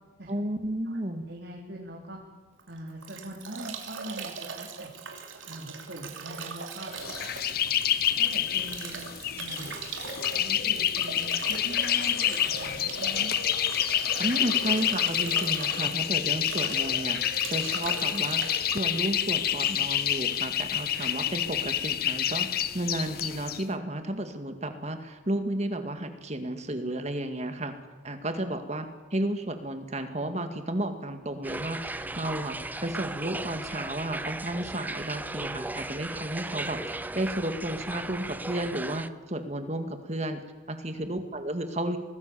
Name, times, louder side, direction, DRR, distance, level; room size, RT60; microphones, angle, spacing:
voice 1, 0.3-1.2 14.2-27.7 28.0-40.4 40.7-42.0, right 1 dB, 35° right, 7 dB, 2.1 m, -33 dB
voice 2, 1.3-2.2 2.7-4.9 5.5-6.9 8.2-9.0 9.4-9.7 10.4-13.3 40.9-41.1, equal, 60° right, -1 dB, 3.4 m, -42 dB
Bathtub (filling or washing) / Drip / Trickle dribble, 2.6-19.8, right 5 dB, 80° right, 3.1 m, -40 dB
sound 1, 7.0-23.6, left 10 dB, 50° left, 0.9 m, -28 dB
sound 2, 31.4-39.1, right 2 dB, 10° right, 0.6 m, -36 dB
25.0 x 19.0 x 7.1 m, 1.4 s
head